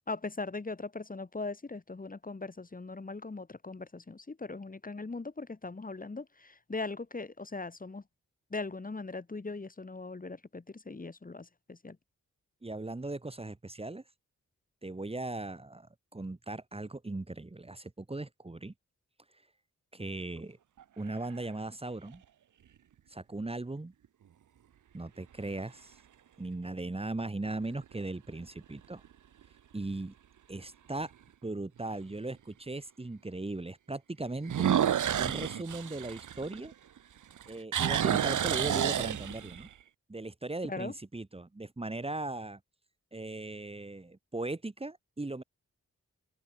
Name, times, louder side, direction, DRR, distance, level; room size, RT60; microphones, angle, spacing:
voice 1, 0.1-8.0 8.5-12.0 40.7-40.9, left 3 dB, 30° left, 2.7 m, -40 dB
voice 2, 12.6-14.0 14.8-18.7 19.9-20.6 21.0-22.2 23.1-23.9 24.9-26.0 26.4-29.0 29.7-30.1 30.5-31.1 31.4-34.7 35.2-36.7 37.5-39.7 40.1-42.6 43.1-45.4, right 2 dB, 20° right, 2.2 m, -38 dB
sound 1, 20.8-21.5 22.1-22.2 27.5-27.9 28.4-28.5 29.0-29.1 29.4-29.5 31.0-31.1 34.4-37.0 37.3-39.7, right 9 dB, 90° right, 0.8 m, -30 dB
open air
wide cardioid pair, 155°, 30 cm